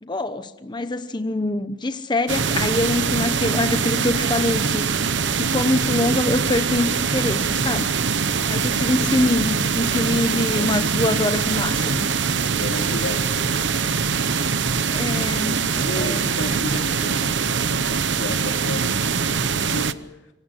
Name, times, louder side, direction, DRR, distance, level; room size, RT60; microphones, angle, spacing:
voice 1, 0.0-4.9 5.3-7.9 8.5-12.1 14.9-15.6 16.0-16.6, left 2 dB, 25° left, 10 dB, 0.9 m, -24 dB
sound 1, 2.3-19.9, right 5 dB, 75° right, 1.0 m, -23 dB
sound 2, 7.5-13.9, right 7 dB, 35° right, 3.8 m, -45 dB
voice 2, 12.6-13.5 15.7-20.3, left 1 dB, 85° left, 4 dB, 2.9 m, -33 dB
26.5 x 24.5 x 6.6 m, 0.99 s
head